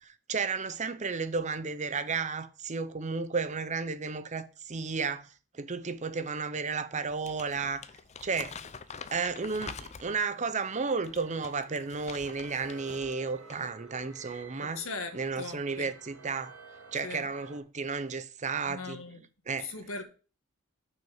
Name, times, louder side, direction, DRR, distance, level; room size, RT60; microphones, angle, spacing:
voice 1, 0.0-5.3 5.5-7.8 8.2-8.6 9.1-14.8 15.1-16.5 16.9-19.0 19.5-19.7, right 4 dB, 35° right, 0.7 m, -33 dB
Crumpling crinkling, 7.1-10.3 10.9-13.2 13.5-13.7, left 6 dB, 30° left, 0.5 m, -46 dB
sound 1, 10.6-17.6, right 4 dB, 85° right, 2.2 m, -51 dB
voice 2, 14.6-15.9 17.0-17.3 18.7-19.2 19.6-20.0, left 4 dB, 70° left, 1.5 m, -40 dB
6.1 x 6.0 x 7.2 m
head